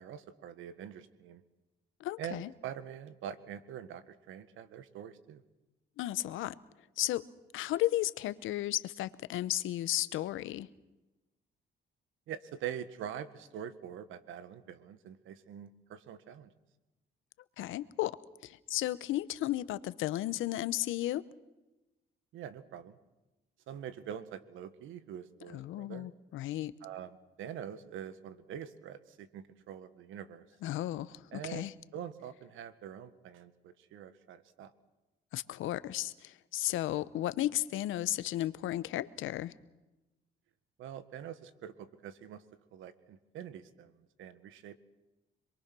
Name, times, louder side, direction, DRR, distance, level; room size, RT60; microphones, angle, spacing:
voice 1, 0.0-1.4 2.2-5.4 12.3-16.5 22.3-23.0 23.7-26.1 26.8-30.4 31.3-31.7 31.9-34.7 40.8-42.4 42.7-43.9 44.2-44.8, right 9 dB, 85° right, 13 dB, 1.7 m, -44 dB
voice 2, 2.0-2.5 6.0-6.5 7.0-7.3 7.5-10.7 17.6-18.2 18.4-21.2 25.5-26.7 30.6-31.7 35.3-39.5, left 14 dB, 85° left, 16 dB, 0.9 m, -34 dB
27.0 x 22.5 x 6.2 m, 1.0 s
cardioid pair, 90°, 20 cm